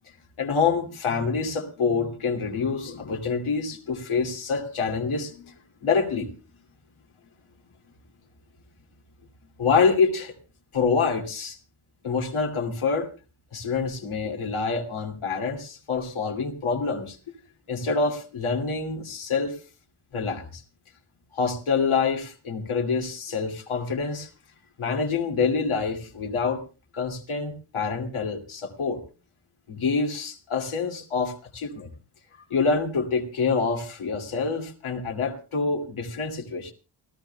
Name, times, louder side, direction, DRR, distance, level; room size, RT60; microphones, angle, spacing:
voice 1, 0.4-5.5 5.8-6.3 9.6-10.3 10.7-11.6 12.0-13.1 13.5-17.2 17.7-19.5 20.1-20.6 21.3-24.3 24.8-26.6 26.9-29.0 29.7-31.9 32.5-36.7, left 5 dB, 85° left, 3 dB, 2.4 m, -26 dB
28.5 x 13.5 x 2.2 m, 0.32 s
wide cardioid pair, 105°, 48 cm